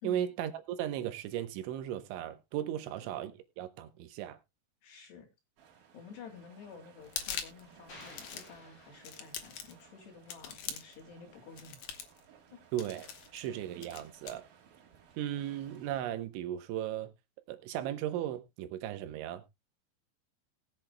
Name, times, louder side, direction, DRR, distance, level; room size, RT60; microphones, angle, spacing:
voice 1, 0.0-4.4 12.7-14.5 15.2-17.1 17.5-19.4, right 11 dB, 80° right, 3.3 m, -36 dB
voice 2, 4.8-5.3 5.9-11.8 12.5-12.6 13.3-13.6, left 5 dB, 65° left, 4.3 m, -51 dB
sound 1, 5.6-16.0, right 7 dB, 55° right, 3.4 m, -60 dB
sound 2, 7.0-7.6 8.0-8.6 9.0-9.8 10.3-11.0 11.6-12.2 12.8-13.5 13.8-14.3, left 8 dB, 85° left, 1.7 m, -41 dB
sound 3, 7.9-9.6, left 2 dB, 30° left, 3.8 m, -53 dB
20.0 x 7.5 x 2.2 m
omnidirectional pair, 5.5 m